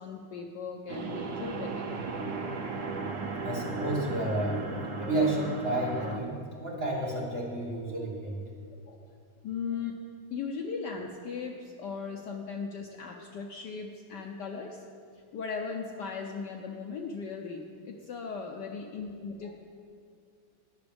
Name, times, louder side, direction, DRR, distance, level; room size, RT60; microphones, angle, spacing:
voice 1, 0.0-1.8 8.9-9.2 9.4-9.9 10.3-14.8 15.3-19.6, left 5 dB, 65° left, 2 dB, 1.1 m, -38 dB
sound 1, 0.9-6.2, right 4 dB, 70° right, 0.7 m, -35 dB
voice 2, 3.4-4.7 5.0-8.4, right 1 dB, 30° right, -4 dB, 1.8 m, -31 dB
21.0 x 7.1 x 3.4 m, 2.3 s
omnidirectional pair, 2.3 m